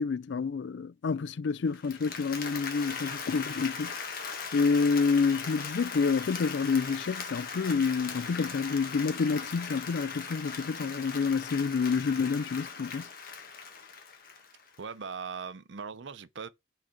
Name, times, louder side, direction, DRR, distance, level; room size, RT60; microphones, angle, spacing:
voice 1, 0.0-4.0 4.5-13.1, left 5 dB, 65° left, 0.4 m, -28 dB
Applause, 1.7-14.8, left 5 dB, 45° left, 1.4 m, -39 dB
voice 2, 14.8-16.5, right 5 dB, 70° right, 0.6 m, -39 dB
5.2 x 4.0 x 5.7 m
head